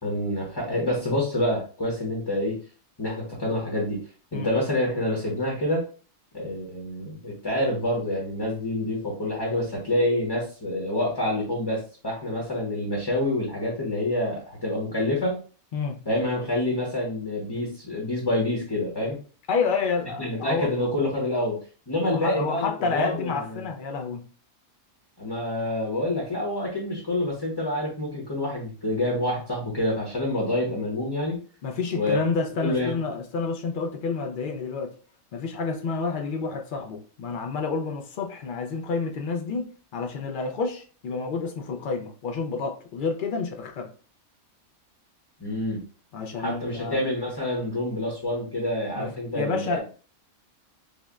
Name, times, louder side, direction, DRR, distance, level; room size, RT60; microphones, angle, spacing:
voice 1, 0.0-2.6 3.0-4.0 4.3-5.8 6.3-15.4 16.1-19.2 20.2-21.6 21.9-23.6 25.2-31.4 31.9-32.2 32.6-32.9 45.4-45.8 46.3-49.8, left 1 dB, 20° left, 0.8 m, -27 dB
voice 2, 19.5-20.7 22.1-24.2 31.6-34.9 35.3-43.9 46.1-47.0 49.0-49.8, left 4 dB, 80° left, 0.4 m, -29 dB
5.3 x 2.1 x 2.3 m
omnidirectional pair, 1.5 m